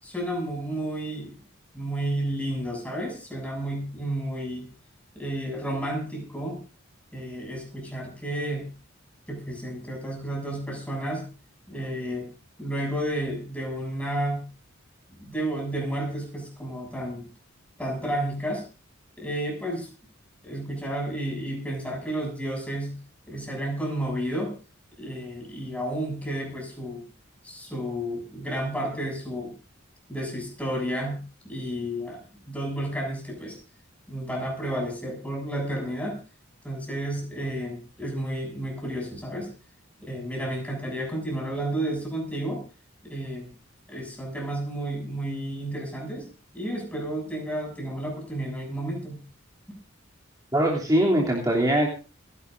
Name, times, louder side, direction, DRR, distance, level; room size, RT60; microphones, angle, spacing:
voice 1, 0.0-1.4 1.7-4.7 5.1-6.6 7.1-8.7 9.3-11.3 11.7-12.3 12.6-14.4 15.2-17.3 17.8-18.6 19.2-19.9 20.4-23.0 23.3-24.5 25.0-27.0 27.4-29.5 30.1-33.6 34.1-36.2 36.6-39.5 40.0-42.6 43.0-43.5 43.9-46.3 46.5-49.2, right 1 dB, 5° left, 0 dB, 7.4 m, -31 dB
voice 2, 50.5-51.9, right 1 dB, 20° right, -3 dB, 3.0 m, -22 dB
29.0 x 11.5 x 2.6 m, 0.32 s
head